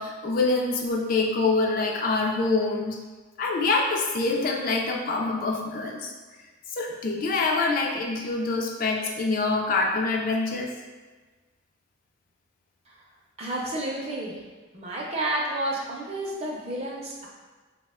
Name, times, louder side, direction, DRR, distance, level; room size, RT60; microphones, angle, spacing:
voice 1, 0.0-3.0 3.4-6.1 6.7-10.7, left 3 dB, 45° left, 0 dB, 0.3 m, -25 dB
voice 2, 13.4-14.4 14.7-17.3, right 1 dB, 30° right, -3 dB, 0.5 m, -30 dB
2.8 x 2.1 x 3.5 m, 1.3 s
head